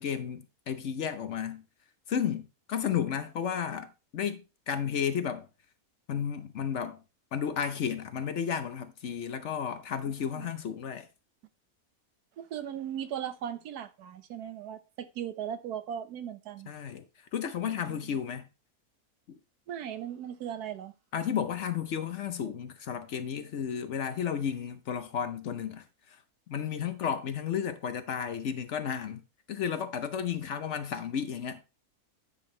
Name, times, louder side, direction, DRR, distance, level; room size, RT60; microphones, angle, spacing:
voice 1, 0.0-1.6 2.1-5.5 6.1-7.0 7.3-11.1 16.7-17.0 17.3-18.5 19.3-19.4 21.1-26.2 26.5-29.2 29.5-31.6, left 8 dB, 60° left, 0.9 m, -33 dB
voice 2, 10.1-10.5 12.4-16.7 17.9-18.0 19.7-20.9, right 9 dB, 85° right, 1.3 m, -38 dB
9.7 x 5.4 x 3.1 m
omnidirectional pair, 1.6 m